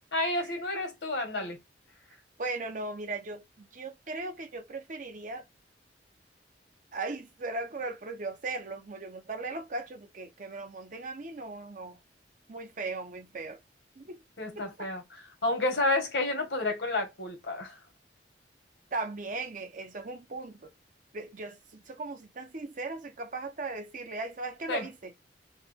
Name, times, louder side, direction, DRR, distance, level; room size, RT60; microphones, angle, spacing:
voice 1, 0.1-1.6 14.4-15.0 15.4-17.8 24.7-24.9, left 2 dB, 75° left, 1.4 m, -30 dB
voice 2, 2.4-5.5 6.9-12.0 12.5-13.6 14.0-14.2 14.5-14.9 18.9-20.7 21.1-25.1, right 3 dB, 45° right, 0.7 m, -38 dB
3.2 x 2.3 x 3.4 m
head